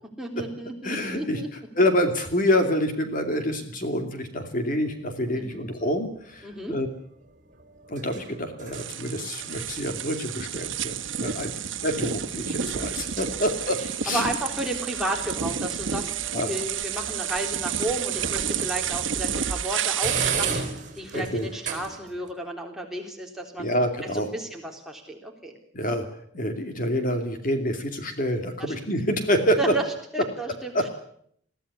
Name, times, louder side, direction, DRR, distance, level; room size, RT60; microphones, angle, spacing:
voice 1, 0.2-1.5 5.3-5.6 6.4-6.8 11.4-11.6 14.1-23.7 24.1-25.6 28.6-28.9 29.6-29.8 30.1-30.9, right 1 dB, ahead, 1 dB, 3.5 m, -33 dB
voice 2, 0.8-1.4 1.8-6.9 7.9-11.5 11.8-14.2 16.3-16.5 21.1-21.5 23.6-24.3 25.7-26.1 26.3-29.6 30.7-30.9, equal, 45° left, 6 dB, 2.7 m, -27 dB
sound 1, 4.8-22.3, right 5 dB, 40° right, 4.5 m, -38 dB
sound 2, 8.7-20.7, right 8 dB, 65° right, 1.5 m, -30 dB
22.0 x 15.5 x 9.8 m, 0.66 s
head